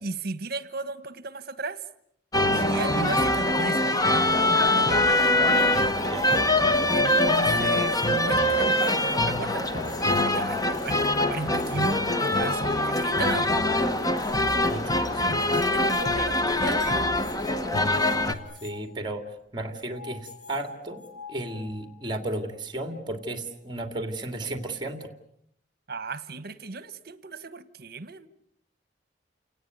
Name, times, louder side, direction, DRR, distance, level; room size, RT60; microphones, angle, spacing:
voice 1, 0.0-1.8 2.5-5.2 6.9-13.7 15.3-17.1 25.9-28.3, right 3 dB, 60° right, 15 dB, 1.4 m, -35 dB
sound 1, 2.3-18.3, left 1 dB, 20° left, 1.7 m, -23 dB
sound 2, 5.1-18.8 19.6-22.2, left 5 dB, 70° left, 5.1 m, -44 dB
voice 2, 18.6-19.2 19.5-21.0 21.3-25.1, right 1 dB, 25° right, 8 dB, 2.5 m, -33 dB
29.5 x 19.0 x 9.4 m, 0.75 s
head